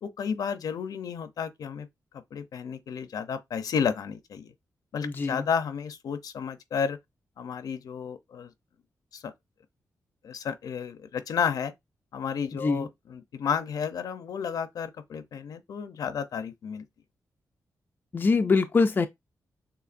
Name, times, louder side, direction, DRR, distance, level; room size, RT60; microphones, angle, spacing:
voice 1, 0.0-1.9 2.3-4.5 4.9-7.0 7.4-8.5 9.1-9.3 10.2-11.7 12.1-16.8, left 7 dB, 75° left, 0.6 m, -32 dB
voice 2, 5.0-5.5 12.6-12.9 18.1-19.1, left 4 dB, 30° left, 0.4 m, -24 dB
6.8 x 2.7 x 2.5 m
wide cardioid pair, 140°, 6 cm